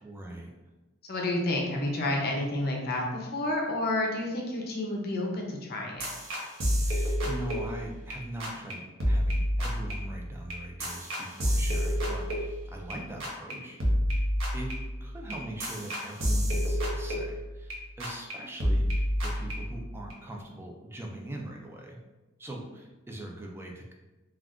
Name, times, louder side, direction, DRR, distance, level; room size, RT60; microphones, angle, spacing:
voice 1, 0.0-0.5 6.8-13.8 14.5-22.0 22.4-23.9, right 1 dB, 10° right, 0 dB, 0.4 m, -41 dB
voice 2, 1.1-6.1, left 1 dB, 50° left, 0 dB, 0.6 m, -30 dB
sound 1, 6.0-8.1 8.4-8.7 9.0-12.9 13.2-13.5 13.8-17.7 18.0-18.3 18.6-20.1, equal, 90° right, 0.7 m, -29 dB
2.4 x 2.3 x 3.5 m, 1.1 s
head